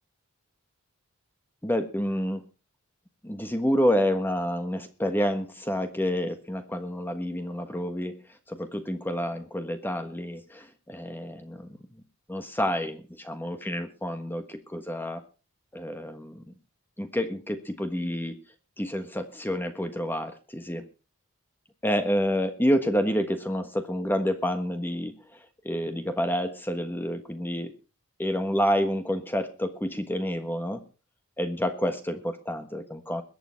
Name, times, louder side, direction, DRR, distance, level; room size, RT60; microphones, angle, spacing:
voice 1, 1.6-2.4 3.2-8.2 8.5-11.7 12.3-15.2 15.7-16.4 17.0-18.3 18.8-20.8 21.8-25.4 25.6-27.7 28.2-30.8 31.4-33.2, equal, 10° left, 7 dB, 1.4 m, -28 dB
21.5 x 9.1 x 4.4 m, 0.34 s
head